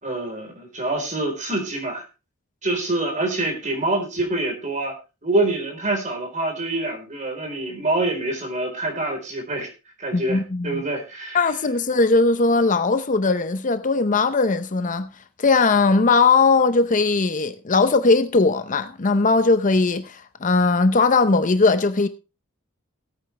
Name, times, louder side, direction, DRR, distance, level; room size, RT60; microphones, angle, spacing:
voice 1, 0.0-2.0 2.6-5.0 5.2-9.7 10.0-11.5, right 2 dB, 35° right, 4.2 m, -26 dB
voice 2, 10.1-10.8 11.3-15.1 15.4-22.1, left 3 dB, 35° left, 0.7 m, -19 dB
17.5 x 9.0 x 3.3 m
head